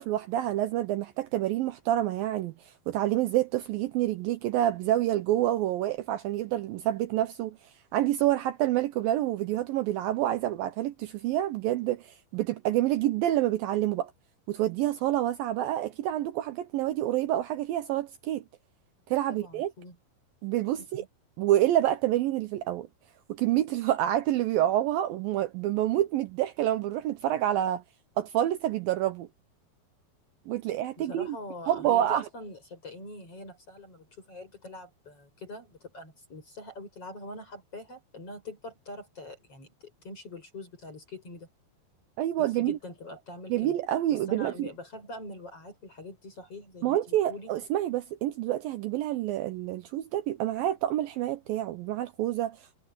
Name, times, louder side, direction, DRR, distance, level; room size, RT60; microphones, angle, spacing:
voice 1, 0.0-7.6 7.9-14.1 14.5-18.4 19.1-19.7 20.4-21.1 21.4-22.9 23.3-27.8 28.2-29.3 30.5-31.4 31.7-32.3 42.2-42.8 43.5-44.7 46.8-52.8, right 13 dB, 75° right, 2.2 m, -28 dB
voice 2, 19.3-20.0 20.8-21.1 31.0-41.5 42.4-43.8 44.1-47.5, left 2 dB, 35° left, 7.5 m, -44 dB
omnidirectional pair, 4.9 m